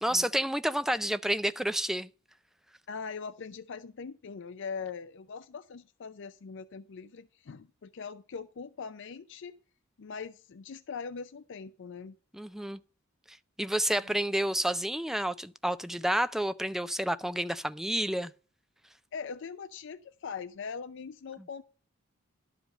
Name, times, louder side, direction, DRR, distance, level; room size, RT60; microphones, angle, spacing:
voice 1, 0.0-2.1 12.3-12.8 13.6-18.3, right 1 dB, ahead, 0.4 m, -30 dB
voice 2, 2.9-9.6 10.0-12.2 14.1-14.2 19.1-21.6, left 5 dB, 60° left, 0.5 m, -41 dB
12.0 x 5.0 x 6.4 m
head